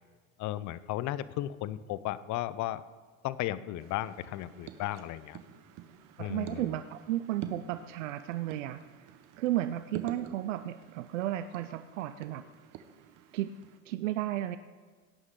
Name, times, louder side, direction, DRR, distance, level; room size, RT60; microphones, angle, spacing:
voice 1, 0.4-2.8 3.2-5.4 6.2-6.7, left 14 dB, 50° left, 16 dB, 0.7 m, -35 dB
sound 1, 3.8-13.8, right 10 dB, 60° right, 1.2 m, -48 dB
voice 2, 6.2-8.8 9.4-12.4 13.3-13.5 13.9-14.6, right 14 dB, 80° right, 11 dB, 0.6 m, -33 dB
17.5 x 9.6 x 3.8 m, 1.5 s
hypercardioid pair, 80°, 37 cm